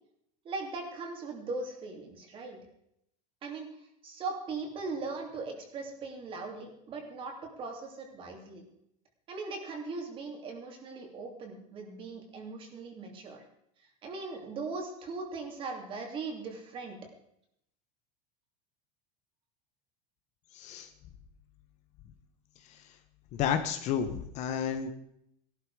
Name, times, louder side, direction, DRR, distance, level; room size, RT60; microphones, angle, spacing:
voice 1, 0.4-2.6 3.4-3.7 4.0-8.6 9.3-13.4 14.0-17.0, right 3 dB, 30° right, 3 dB, 3.0 m, -39 dB
voice 2, 20.5-20.9 22.7-22.8 23.3-24.9, left 8 dB, 40° left, 9 dB, 1.2 m, -31 dB
17.0 x 12.0 x 4.9 m, 0.75 s
supercardioid pair, 165°, 19 cm